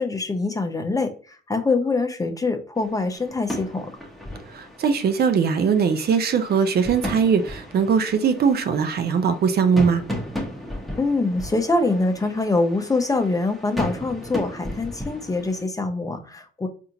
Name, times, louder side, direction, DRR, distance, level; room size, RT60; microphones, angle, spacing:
voice 1, 0.0-3.9 11.0-16.7, left 3 dB, 15° left, 0.7 m, -24 dB
sound 1, 2.8-15.6, equal, ahead, 1.1 m, -35 dB
voice 2, 4.5-10.0, right 6 dB, 55° right, 0.5 m, -20 dB
4.2 x 2.6 x 2.8 m
cardioid pair, 90°, 20 cm